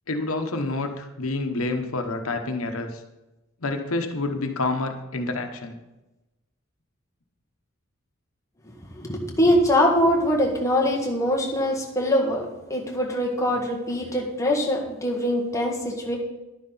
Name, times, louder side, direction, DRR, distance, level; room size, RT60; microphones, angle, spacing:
voice 1, 0.1-3.0 3.6-5.8, left 2 dB, 90° left, 5 dB, 1.1 m, -28 dB
voice 2, 8.9-12.4 12.7-16.2, left 1 dB, 15° left, -2 dB, 1.6 m, -23 dB
11.5 x 9.8 x 4.0 m, 1.0 s
head